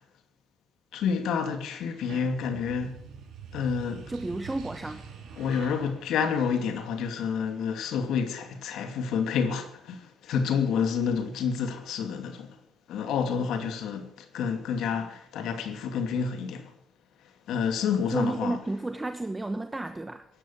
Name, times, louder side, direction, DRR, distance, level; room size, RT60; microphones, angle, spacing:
voice 1, 0.9-3.0 3.5-4.1 5.4-12.5 12.9-16.7 17.5-18.6, left 6 dB, 80° left, 2.6 m, -29 dB
sound 1, 1.8-7.2, right 6 dB, 75° right, 4.4 m, -46 dB
voice 2, 4.1-5.0 18.1-20.3, right 2 dB, 15° right, 1.1 m, -32 dB
16.0 x 11.5 x 7.4 m
cardioid pair, 90°, 0 cm